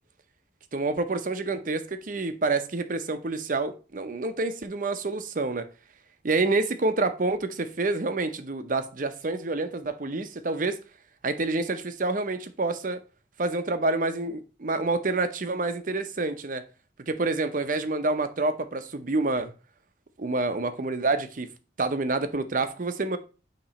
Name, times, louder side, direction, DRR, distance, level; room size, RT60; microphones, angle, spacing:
voice 1, 0.7-5.7 6.2-10.8 11.2-13.0 13.4-16.6 17.1-19.5 20.2-21.5 21.8-23.2, right 3 dB, 45° right, 0.7 m, -28 dB
8.7 x 3.0 x 4.2 m
head